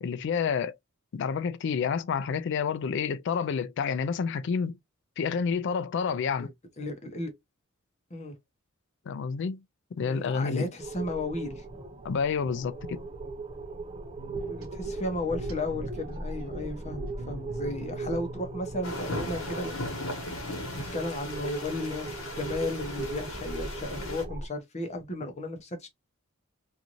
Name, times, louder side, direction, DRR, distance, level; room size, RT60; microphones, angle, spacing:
voice 1, 0.0-0.8 1.1-4.8 5.2-6.5 9.1-9.6 9.9-10.7 12.0-13.0, left 6 dB, 60° left, 0.3 m, -29 dB
voice 2, 6.8-7.3 8.1-8.4 10.0-11.6 14.5-20.5 20.7-25.9, left 2 dB, 35° left, 0.7 m, -34 dB
sound 1, 10.8-24.5, right 3 dB, 25° right, 0.5 m, -38 dB
sound 2, 14.2-19.3, right 1 dB, 75° right, 0.8 m, -44 dB
sound 3, 18.8-24.2, left 1 dB, 80° left, 1.1 m, -37 dB
2.6 x 2.4 x 2.8 m
head